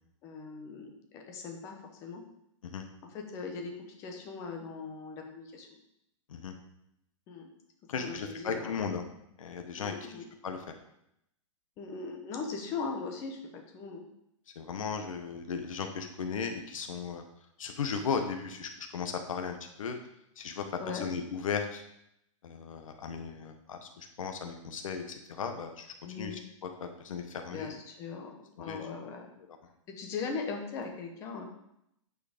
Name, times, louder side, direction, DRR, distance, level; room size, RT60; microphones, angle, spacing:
voice 1, 0.2-2.2 3.1-5.7 7.3-7.5 7.9-8.8 9.7-10.2 11.8-14.0 20.8-21.1 26.0-26.4 27.5-29.3 29.9-31.4, left 4 dB, 15° left, 3 dB, 0.9 m, -39 dB
voice 2, 7.9-9.0 9.4-10.1 10.4-10.8 14.5-17.2 17.6-20.0 20.4-21.8 22.4-26.4 26.8-27.8 28.6-28.9, left 6 dB, 90° left, 5 dB, 1.2 m, -36 dB
9.4 x 4.9 x 5.1 m, 0.79 s
hypercardioid pair, 175°, 17 cm